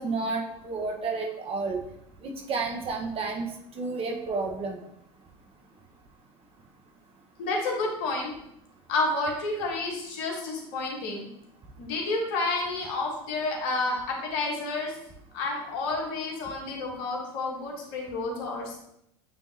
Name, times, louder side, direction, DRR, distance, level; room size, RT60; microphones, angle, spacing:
voice 1, 0.0-1.8 2.2-3.5 3.7-4.8, right 4 dB, 40° right, 1 dB, 1.4 m, -31 dB
voice 2, 7.4-8.4 8.9-11.3 11.8-14.9 15.3-18.8, left 3 dB, 70° left, 0 dB, 1.6 m, -30 dB
8.9 x 3.6 x 2.9 m, 0.77 s
hypercardioid pair, 85°, 15 cm